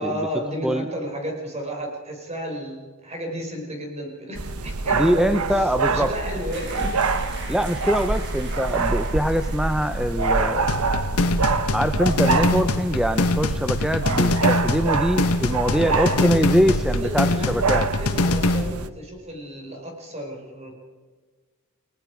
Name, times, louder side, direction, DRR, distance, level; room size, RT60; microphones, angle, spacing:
voice 1, 0.0-7.0 15.6-20.7, equal, 30° right, 2 dB, 5.5 m, -33 dB
sound 1, 4.3-18.9, right 3 dB, 85° right, 1.2 m, -26 dB
voice 2, 4.9-6.1 7.5-10.7 11.7-17.9, equal, 5° right, 9 dB, 0.7 m, -23 dB
sound 2, 6.5-10.4 10.7-10.9, right 3 dB, 55° right, 4.9 m, -41 dB
sound 3, 10.7-18.7, left 2 dB, 85° left, 1.4 m, -24 dB
30.0 x 19.0 x 4.9 m, 1.4 s
head